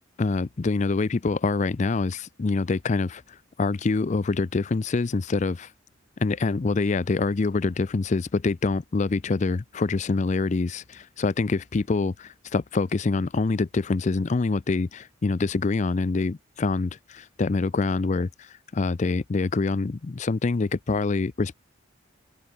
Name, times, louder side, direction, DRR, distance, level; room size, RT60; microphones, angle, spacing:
voice 1, 0.2-3.2 3.6-5.7 6.2-18.5 18.7-21.5, left 3 dB, 40° left, 0.4 m, -25 dB
open air
head